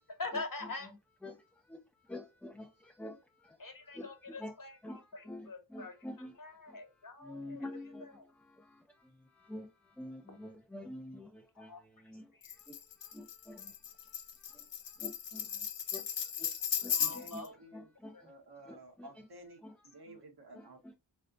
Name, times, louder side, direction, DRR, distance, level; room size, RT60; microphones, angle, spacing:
voice 1, 0.2-0.9 3.6-7.7 8.0-8.3 11.5-11.8 12.3-12.6 16.8-17.5 18.1-18.3, left 3 dB, 50° left, 1.4 m, -44 dB
voice 2, 1.2-1.8 2.1-3.6 3.9-4.5 4.8-6.3 6.7-6.8 7.2-12.3 12.6-14.7 15.0-16.5 16.8-17.4 17.7-18.3 18.7-19.1 19.6-19.7 20.5-20.9, left 1 dB, 5° left, 0.5 m, -48 dB
Tambourine, 12.4-17.5, left 8 dB, 70° left, 0.8 m, -36 dB
voice 3, 17.0-17.9 18.2-20.9, right 1 dB, 60° right, 1.3 m, -53 dB
3.6 x 3.3 x 2.6 m
cardioid pair, 55°, 44 cm